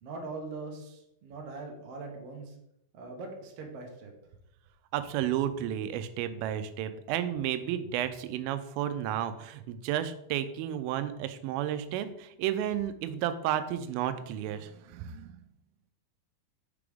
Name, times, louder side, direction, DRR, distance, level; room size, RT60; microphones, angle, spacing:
voice 1, 0.0-2.5 2.9-4.1, right 3 dB, 65° right, 1 dB, 1.5 m, -41 dB
voice 2, 4.9-15.4, right 11 dB, 85° right, 11 dB, 2.3 m, -32 dB
5.8 x 5.0 x 3.5 m, 0.78 s
omnidirectional pair, 4.3 m